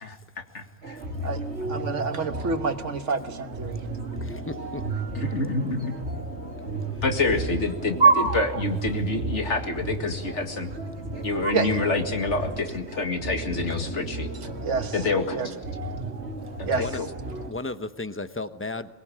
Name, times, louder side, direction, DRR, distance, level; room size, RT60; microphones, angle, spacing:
voice 1, 0.5-1.0 5.2-5.9 7.0-10.7 11.2-14.3 14.9-15.4 16.6-17.1, left 3 dB, 75° left, 5 dB, 2.4 m, -27 dB
sound 1, 0.8-17.5, right 3 dB, 65° right, 3.0 m, -30 dB
voice 2, 1.7-3.8 11.5-11.8 14.6-15.0 15.3-15.5 16.7-16.9, right 5 dB, 80° right, 8 dB, 1.7 m, -28 dB
voice 3, 4.2-4.8 13.7-13.8 16.7-17.0 17.4-18.9, left 3 dB, 10° left, 10 dB, 0.8 m, -34 dB
23.5 x 20.5 x 8.8 m, 1.0 s
omnidirectional pair, 1.2 m